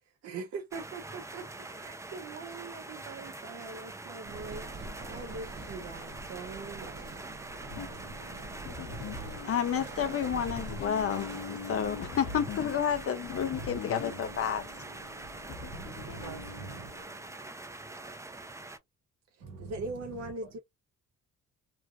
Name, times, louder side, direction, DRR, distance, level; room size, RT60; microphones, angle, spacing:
voice 1, 0.2-7.3 19.3-20.6, right 3 dB, 55° right, 0.7 m, -42 dB
sound 1, 0.7-18.8, right 2 dB, 10° right, 0.5 m, -44 dB
sound 2, 4.2-17.0, right 2 dB, 35° right, 0.9 m, -47 dB
sound 3, 7.7-17.2, left 5 dB, 80° left, 0.8 m, -43 dB
voice 2, 9.4-14.6, left 8 dB, 50° left, 0.6 m, -30 dB
voice 3, 15.7-16.9 19.4-20.6, right 4 dB, 80° right, 1.6 m, -45 dB
3.2 x 2.4 x 2.4 m
cardioid pair, 90°, 30 cm